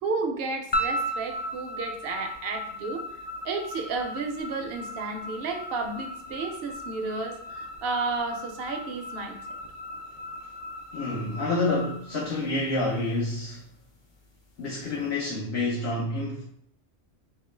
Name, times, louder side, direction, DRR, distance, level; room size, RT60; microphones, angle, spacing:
voice 1, 0.0-3.0 3.4-9.4, right 3 dB, 60° right, 4 dB, 0.7 m, -32 dB
sound 1, 0.7-13.0, equal, 50° left, 0.3 m, -36 dB
voice 2, 10.9-13.6 14.6-16.4, left 2 dB, 65° left, -3 dB, 0.9 m, -28 dB
3.7 x 2.3 x 3.2 m, 0.66 s
omnidirectional pair, 1.2 m